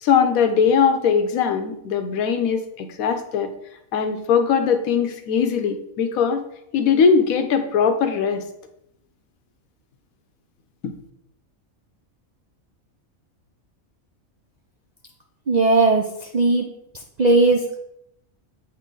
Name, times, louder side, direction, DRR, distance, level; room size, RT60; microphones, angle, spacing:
voice 1, 0.0-3.5 3.9-6.4 6.7-8.4 10.8-10.9, left 6 dB, 85° left, 8 dB, 1.1 m, -20 dB
voice 2, 15.5-16.7 17.2-17.8, right 3 dB, 60° right, 1 dB, 0.4 m, -18 dB
8.7 x 3.1 x 3.7 m, 0.79 s
omnidirectional pair, 1.4 m